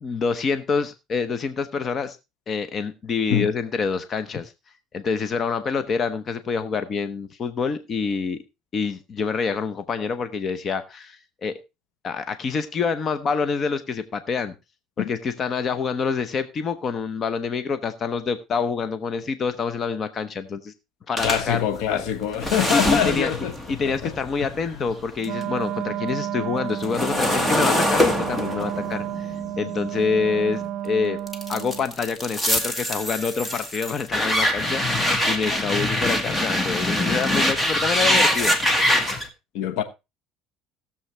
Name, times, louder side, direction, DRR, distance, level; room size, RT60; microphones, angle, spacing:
voice 1, 0.0-2.2 2.5-4.5 4.9-8.4 8.7-11.6 12.0-14.5 15.0-20.7 21.1-21.6 21.9-22.0 22.7-23.3 23.7-31.2 31.5-38.6, left 5 dB, 35° left, 0.8 m, -27 dB
voice 2, 21.2-23.5 23.8-24.1 39.5-39.8, left 9 dB, 75° left, 1.1 m, -24 dB
sound 1, 21.2-25.4 25.8-30.7 31.3-39.3, left 1 dB, 10° left, 1.4 m, -24 dB
Wind instrument woodwind instrument, 25.2-31.9, right 12 dB, 60° right, 0.6 m, -31 dB
17.5 x 7.1 x 3.2 m
cardioid pair, 135°, 0 cm